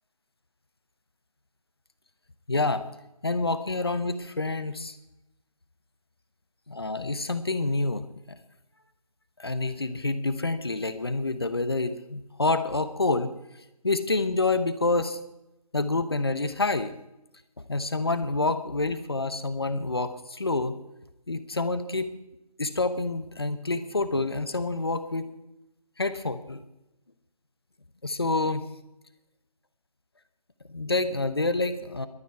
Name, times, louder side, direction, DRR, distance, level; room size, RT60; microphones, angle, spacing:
voice 1, 2.5-2.8 3.2-5.0 6.7-8.0 9.4-13.3 13.8-15.2 15.7-16.9 17.7-20.7 21.3-22.1 22.6-25.3 26.0-26.6 28.0-28.6 30.7-32.1, left 3 dB, 40° left, 11 dB, 1.0 m, -27 dB
16.0 x 12.5 x 4.7 m, 0.92 s
figure-of-eight pair, 170°, 19 cm